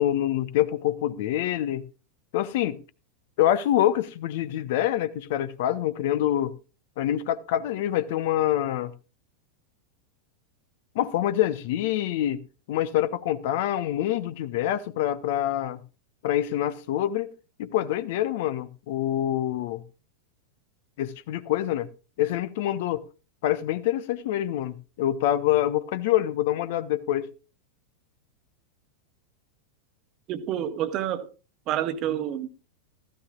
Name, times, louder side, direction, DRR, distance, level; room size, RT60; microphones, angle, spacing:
voice 1, 0.0-1.8 2.3-2.8 3.4-6.5 7.0-8.9 10.9-12.4 12.7-15.8 16.2-17.3 17.6-19.8 21.0-21.9 22.2-23.0 23.4-27.3, left 12 dB, 50° left, 0.8 m, -26 dB
voice 2, 30.3-31.3 31.7-32.5, right 11 dB, 35° right, 1.2 m, -28 dB
15.5 x 14.0 x 2.4 m
figure-of-eight pair, 90°, 0 cm